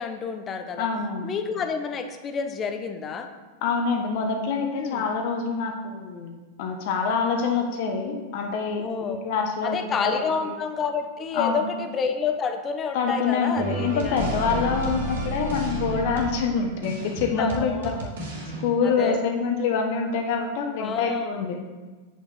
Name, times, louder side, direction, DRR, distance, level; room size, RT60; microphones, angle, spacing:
voice 1, 0.0-0.9 1.2-3.3 4.8-5.0 8.7-9.2 9.6-14.2 14.5-14.6 17.4-18.1 18.8-19.2 20.8-21.5, left 6 dB, 25° left, 7 dB, 0.9 m, -29 dB
voice 2, 0.8-1.3 3.6-6.3 6.6-10.5 11.3-11.7 12.9-18.0 18.6-21.6, left 5 dB, 50° left, 3 dB, 1.1 m, -26 dB
sound 1, 13.5-18.6, right 1 dB, 65° right, 2.4 m, -32 dB
8.4 x 6.3 x 4.3 m, 1.3 s
figure-of-eight pair, 95°, 0 cm